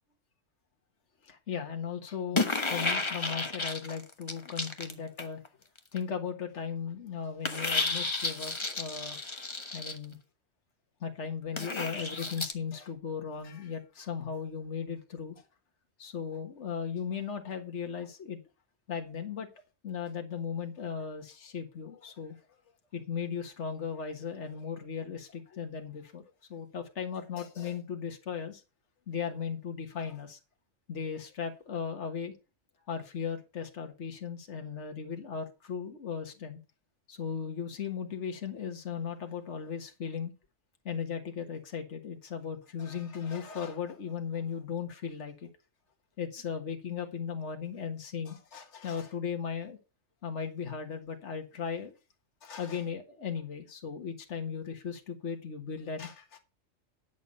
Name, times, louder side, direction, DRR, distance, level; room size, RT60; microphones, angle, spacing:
voice 1, 1.2-5.4 5.9-9.3 9.7-10.2 11.0-15.4 16.0-18.4 18.9-19.5 19.8-22.4 22.9-26.2 26.5-28.6 29.1-30.4 30.9-32.3 32.9-36.6 37.1-40.3 40.9-45.5 46.2-49.8 50.2-51.9 52.4-56.4, left 6 dB, 60° left, 1.8 m, -37 dB
sound 1, 2.3-5.5 5.8-6.0 7.4-10.0 11.5-12.5, left 3 dB, 25° left, 1.1 m, -32 dB
10.5 x 7.0 x 5.3 m
omnidirectional pair, 1.3 m